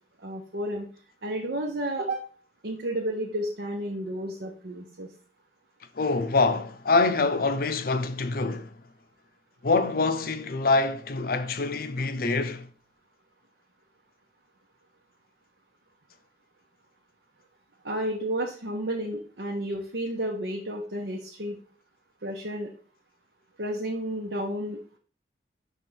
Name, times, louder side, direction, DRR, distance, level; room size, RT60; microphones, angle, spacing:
voice 1, 0.2-0.9 1.2-2.2 2.6-5.1 17.8-21.6 22.2-22.7 23.6-25.0, right 1 dB, 80° right, 1.0 m, -31 dB
voice 2, 5.9-8.7 9.6-12.7, left 3 dB, 55° left, 0.6 m, -25 dB
6.0 x 3.7 x 5.4 m
head